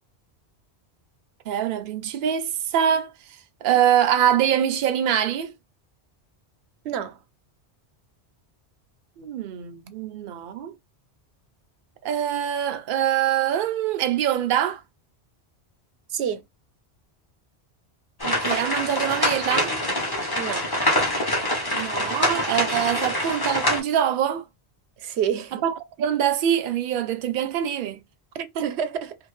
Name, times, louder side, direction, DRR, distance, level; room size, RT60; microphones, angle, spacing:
voice 1, 1.5-3.1 3.6-5.5 9.2-10.7 12.0-14.8 18.2-19.7 21.7-24.4 25.6-28.0 28.6-28.7, right 10 dB, 60° right, 0.6 m, -24 dB
voice 2, 6.8-7.2 16.1-16.4 20.4-20.7 25.0-25.6 28.3-29.2, right 8 dB, 85° right, 0.9 m, -28 dB
sound 1, 18.2-23.8, left 1 dB, 25° left, 0.8 m, -25 dB
2.6 x 2.5 x 3.0 m
omnidirectional pair, 1.1 m